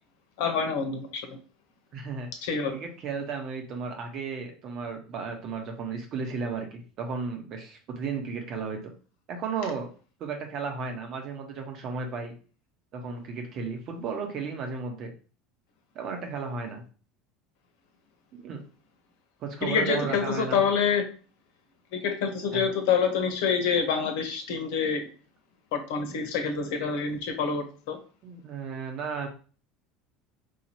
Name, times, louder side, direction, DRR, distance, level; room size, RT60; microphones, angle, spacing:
voice 1, 0.4-1.4 2.4-2.8 19.6-21.1 22.0-25.0 25.7-28.0, left 6 dB, 65° left, 5 dB, 0.9 m, -27 dB
voice 2, 1.9-2.3 2.7-8.8 9.3-9.9 10.2-12.3 12.9-15.1 15.9-16.8 18.3-18.6 19.4-20.6 22.5-22.6 28.2-29.3, right 5 dB, 50° right, 3 dB, 1.2 m, -34 dB
4.8 x 2.8 x 2.9 m, 0.38 s
hypercardioid pair, 75°, 0 cm